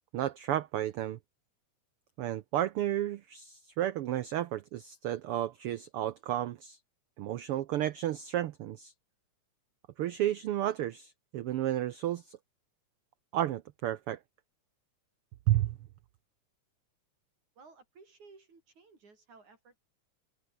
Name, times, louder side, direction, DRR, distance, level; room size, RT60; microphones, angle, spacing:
voice 1, 0.1-1.2 2.2-6.8 7.2-8.9 10.0-12.4 13.3-14.2 15.5-15.8, right 12 dB, 90° right, 1.2 m, -32 dB
voice 2, 17.6-19.8, right 4 dB, 70° right, 6.8 m, -57 dB
omnidirectional pair, 3.5 m